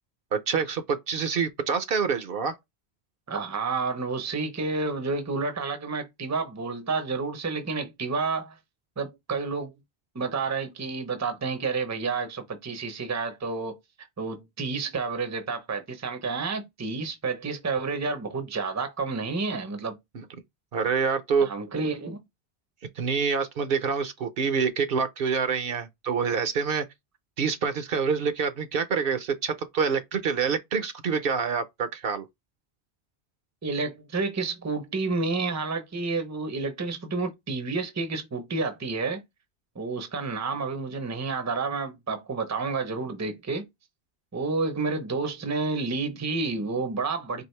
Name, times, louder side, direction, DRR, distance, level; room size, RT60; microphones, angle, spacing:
voice 1, 0.3-2.5 20.7-21.5 23.0-26.8 27.4-32.3, right 6 dB, 65° right, 0.8 m, -26 dB
voice 2, 3.3-8.6 9.0-9.7 10.1-13.8 14.2-20.0 21.4-22.2 33.6-39.2 39.8-43.6 44.3-47.4, right 4 dB, 20° right, 0.6 m, -30 dB
4.6 x 2.5 x 3.1 m
omnidirectional pair, 1.1 m